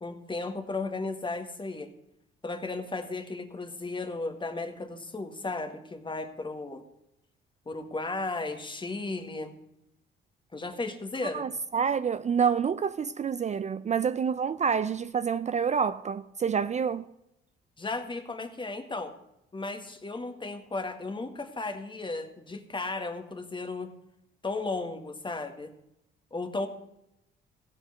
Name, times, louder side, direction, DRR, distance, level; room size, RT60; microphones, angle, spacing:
voice 1, 0.0-1.9 2.4-6.8 7.6-9.5 10.5-11.5 17.8-19.1 19.5-23.9 24.4-25.7 26.3-26.7, left 3 dB, 25° left, 1.7 m, -35 dB
voice 2, 11.3-17.1, right 6 dB, 35° right, 0.5 m, -28 dB
15.5 x 5.4 x 7.6 m
cardioid pair, 90°, 20 cm